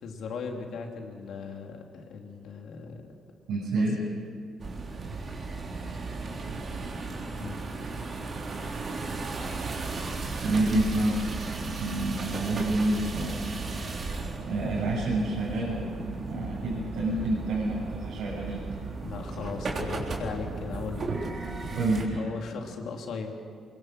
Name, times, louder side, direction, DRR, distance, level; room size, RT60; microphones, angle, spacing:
voice 1, 0.0-3.1 3.7-4.1 7.4-7.6 19.0-21.1 22.1-23.3, left 5 dB, 70° left, 2 dB, 2.9 m, -38 dB
voice 2, 3.5-4.0 5.0-5.1 6.5-6.6 9.6-9.7 10.4-11.1 11.8-13.3 14.4-18.6 21.7-22.3, right 2 dB, 80° right, -6 dB, 6.2 m, -28 dB
sound 1, 4.6-22.0, right 3 dB, 45° right, 3.6 m, -35 dB
23.0 x 22.0 x 6.5 m, 2.3 s
cardioid pair, 90°, 0 cm